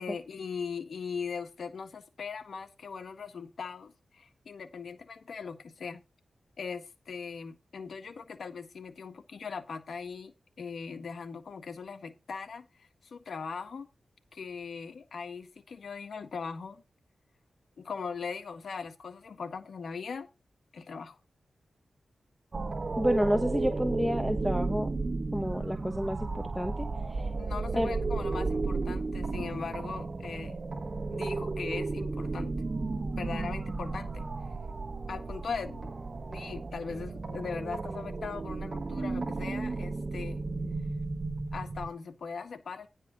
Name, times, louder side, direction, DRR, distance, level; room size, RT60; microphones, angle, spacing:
voice 1, 0.0-6.0 6.6-13.9 14.3-16.8 17.8-20.3 20.7-21.2 27.4-30.6 31.1-32.5 33.2-34.3 35.1-36.0 36.3-40.4 41.5-42.9, left 5 dB, 75° left, 7 dB, 1.6 m, -40 dB
sound 1, 22.5-41.9, right 3 dB, 45° right, 1.2 m, -34 dB
voice 2, 23.0-24.9 25.3-27.3 27.7-27.9, equal, 5° left, 6 dB, 1.1 m, -30 dB
10.0 x 5.3 x 6.1 m, 0.25 s
cardioid pair, 75°, 0 cm